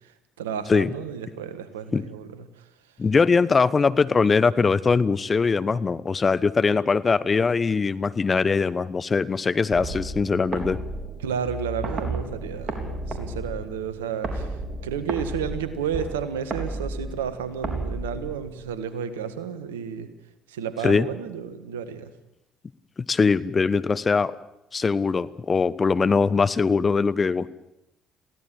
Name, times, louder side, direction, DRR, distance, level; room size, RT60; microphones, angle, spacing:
voice 1, 0.4-2.4 11.2-14.6 14.8-20.1 20.5-22.1, right 7 dB, 85° right, 12 dB, 1.6 m, -32 dB
voice 2, 3.0-10.8 20.8-21.1 23.1-24.3 24.7-27.5, left 4 dB, 35° left, 16 dB, 1.0 m, -21 dB
sound 1, 9.7-18.8, right 2 dB, 50° right, 3.8 m, -33 dB
22.0 x 16.0 x 9.0 m, 0.88 s
hypercardioid pair, 50°, 0 cm